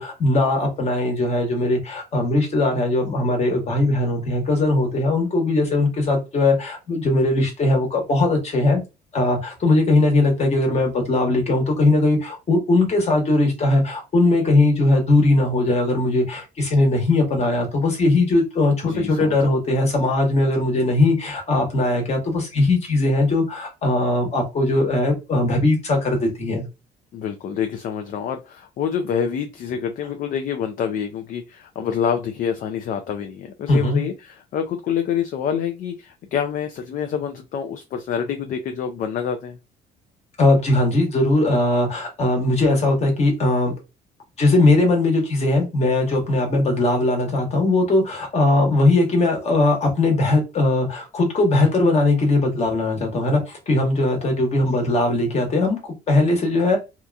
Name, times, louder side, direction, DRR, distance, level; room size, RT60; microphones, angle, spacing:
voice 1, 0.0-8.8 9.1-26.6 33.7-34.1 40.4-43.7 44.4-56.8, left 2 dB, 40° left, 1.2 m, -19 dB
voice 2, 18.9-19.4 27.1-39.6, left 8 dB, 55° left, 0.4 m, -27 dB
2.7 x 2.5 x 2.2 m
cardioid pair, 110°, 17 cm